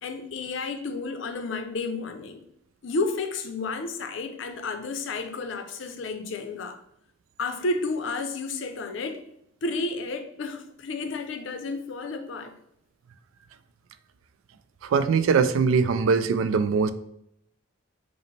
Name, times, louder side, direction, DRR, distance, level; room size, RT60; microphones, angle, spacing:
voice 1, 0.0-2.4 2.8-6.8 7.4-9.2 9.6-12.5, left 3 dB, 70° left, 0.5 m, -31 dB
voice 2, 14.8-16.9, right 5 dB, 80° right, 0.3 m, -22 dB
4.9 x 2.1 x 3.2 m
head